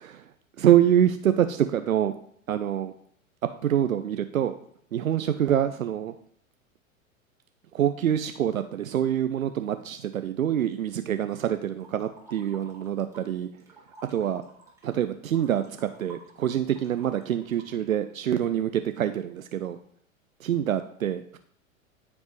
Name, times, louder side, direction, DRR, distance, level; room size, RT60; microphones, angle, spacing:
voice 1, 0.6-2.1 2.5-2.9 3.6-4.6 4.9-6.1 7.7-13.5 14.1-14.4 14.8-19.8 20.4-21.4, right 10 dB, 75° right, 9 dB, 0.6 m, -25 dB
sound 1, 11.8-13.3 13.6-18.0, right 2 dB, 5° right, 2.3 m, -51 dB
13.5 x 5.3 x 3.1 m, 0.64 s
figure-of-eight pair, 95°, 41 cm